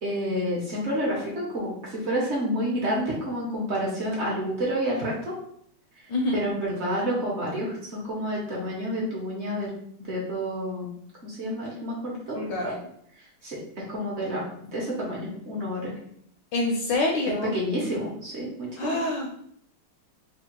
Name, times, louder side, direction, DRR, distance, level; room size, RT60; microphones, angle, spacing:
voice 1, 0.0-5.3 6.3-9.7 10.1-10.9 11.2-12.7 13.4-14.4 14.7-15.9 17.5-19.0, equal, 45° right, -4 dB, 0.9 m, -29 dB
voice 2, 6.1-6.4 12.3-12.7 16.5-17.5 18.8-19.4, left 2 dB, 70° left, 0 dB, 1.1 m, -26 dB
3.6 x 2.3 x 4.3 m, 0.66 s
omnidirectional pair, 2.4 m